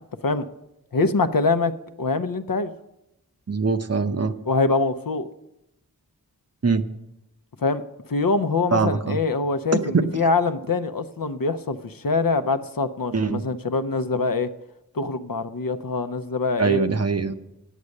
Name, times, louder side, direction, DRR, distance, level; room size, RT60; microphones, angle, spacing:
voice 1, 0.9-1.7 2.0-2.7 4.5-5.3 7.6-7.8 8.1-14.5 14.9-16.8, left 3 dB, 60° left, 10 dB, 0.7 m, -24 dB
voice 2, 3.5-4.4 6.6-6.8 8.7-9.2 9.8-10.1 13.1-13.4 16.6-17.3, right 4 dB, 40° right, 8 dB, 0.8 m, -22 dB
9.6 x 8.3 x 6.5 m, 0.88 s
wide cardioid pair, 50°, 38 cm